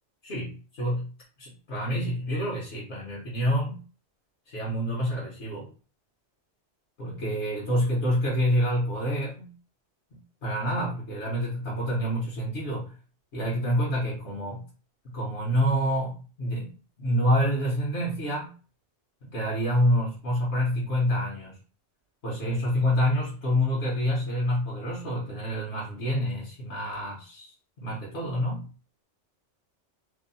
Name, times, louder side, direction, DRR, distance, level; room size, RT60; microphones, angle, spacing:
voice 1, 0.2-1.1 1.4-3.8 4.5-5.7 7.0-9.5 10.1-13.0 13.3-14.7 15.0-18.5 19.2-21.6 22.2-28.7, equal, 65° left, -6 dB, 1.0 m, -27 dB
2.7 x 2.0 x 2.5 m, 0.37 s
omnidirectional pair, 1.2 m